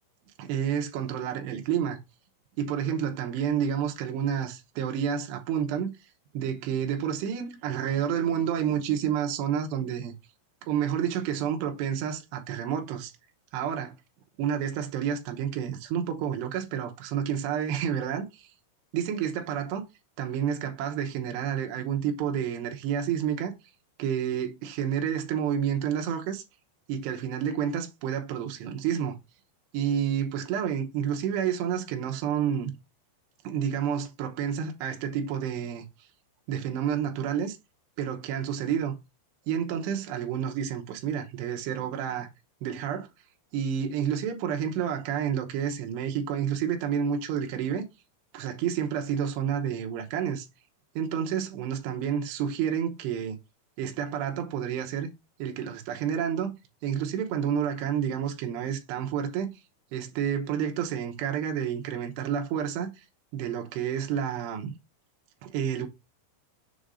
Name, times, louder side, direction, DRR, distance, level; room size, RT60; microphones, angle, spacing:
voice 1, 0.4-2.0 2.6-5.9 6.3-10.1 10.6-13.1 13.5-13.9 14.4-18.5 18.9-19.8 20.2-23.5 24.0-26.4 26.9-29.2 29.7-32.7 33.4-35.8 36.5-37.6 38.0-38.9 39.5-42.3 42.6-43.1 43.5-47.8 48.3-50.5 51.0-53.4 53.8-55.1 55.4-56.6 56.8-59.5 59.9-62.9 63.3-64.7 65.4-65.9, right 8 dB, 75° right, 2.8 m, -29 dB
7.4 x 2.7 x 4.9 m
omnidirectional pair, 5.6 m